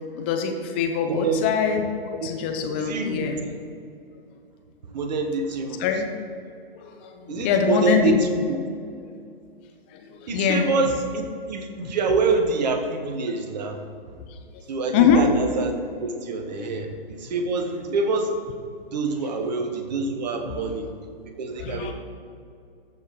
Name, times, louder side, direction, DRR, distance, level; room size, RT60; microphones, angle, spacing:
voice 1, 0.1-1.8 2.1-3.4 5.8-6.1 7.0-8.2 10.3-10.7 11.8-11.9 14.9-15.2 16.6-16.7 21.6-21.9, left 7 dB, 10° left, 4 dB, 0.3 m, -23 dB
voice 2, 1.1-1.5 2.2-2.3 2.7-3.3 4.9-6.0 7.3-8.6 10.3-13.8 14.7-18.4 18.9-20.9 21.4-21.9, right 3 dB, 45° right, 6 dB, 1.2 m, -26 dB
14.5 x 6.2 x 3.7 m, 2.4 s
figure-of-eight pair, 120°, 30 cm